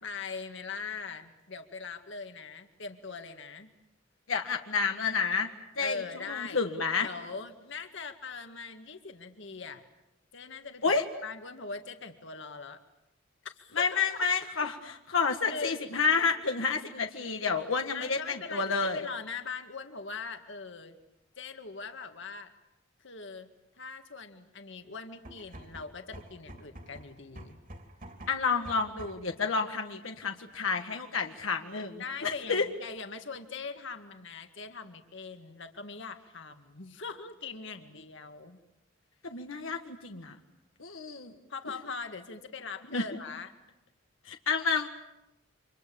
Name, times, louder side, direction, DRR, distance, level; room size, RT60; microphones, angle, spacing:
voice 1, 0.0-3.7 5.8-6.6 7.0-9.8 10.3-12.8 13.4-14.2 15.5-15.8 17.9-21.0 21.4-22.5 23.0-23.5 23.8-27.6 32.0-38.6 41.5-43.5, left 4 dB, 65° left, 7 dB, 2.0 m, -41 dB
voice 2, 4.3-5.5 5.8-6.0 6.3-7.1 10.8-11.0 13.8-19.0 28.3-32.7 39.2-40.4 40.8-41.3 42.9-43.0 44.3-44.9, left 5 dB, 80° left, 4 dB, 1.7 m, -30 dB
sound 1, 25.1-29.3, right 1 dB, 45° right, 3.3 m, -48 dB
29.5 x 26.0 x 7.1 m, 0.93 s
head